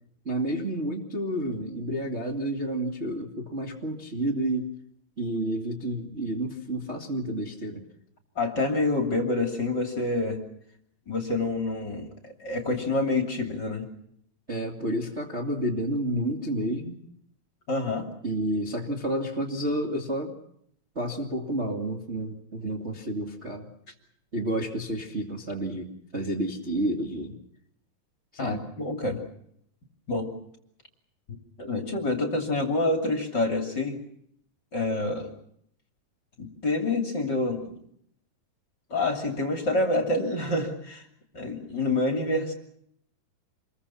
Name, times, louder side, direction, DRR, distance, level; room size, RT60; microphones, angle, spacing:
voice 1, 0.2-4.7 5.2-7.8 14.5-17.0 18.2-20.3 21.0-23.7 24.3-27.4 28.4-28.6, right 1 dB, 20° right, 0 dB, 1.9 m, -30 dB
voice 2, 8.4-10.4 11.1-13.8 17.7-18.1 28.4-29.2 30.1-30.3 31.6-34.0 34.7-35.3 36.4-37.7 38.9-41.0 41.3-42.5, left 2 dB, 30° left, 3 dB, 2.9 m, -27 dB
28.0 x 22.0 x 5.8 m, 0.69 s
omnidirectional pair, 4.6 m